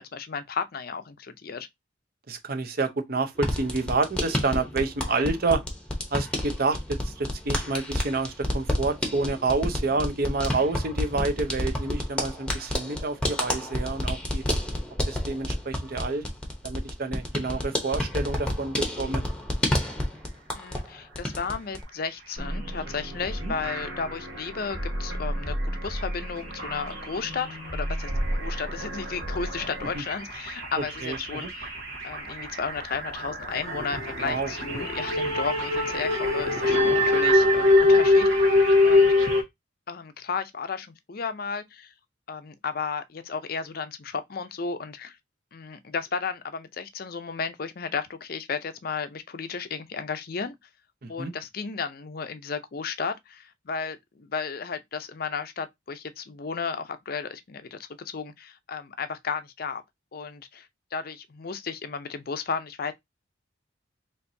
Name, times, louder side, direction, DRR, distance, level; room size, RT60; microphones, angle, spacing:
voice 1, 0.0-1.7 20.5-28.1 28.4-31.7 32.0-38.4 38.8-39.1 39.9-41.9 42.3-45.2 45.5-50.6 51.1-59.8 60.1-62.9, left 5 dB, 50° left, 0.5 m, -33 dB
voice 2, 2.3-5.6 6.1-14.4 15.1-16.2 16.6-19.2 23.4-23.5 29.9-30.0 31.0-31.5 34.2-34.5 34.8-34.9 51.2-51.3, right 3 dB, 50° right, 0.7 m, -28 dB
sound 1, 3.4-20.9 21.1-21.8, left 1 dB, 5° left, 0.8 m, -30 dB
sound 2, 22.4-30.0, equal, 65° right, 1.7 m, -33 dB
sound 3, 24.3-24.4 24.8-25.0 25.3-25.5 25.9-39.4, left 2 dB, 90° right, 1.4 m, -24 dB
4.4 x 3.0 x 2.7 m
head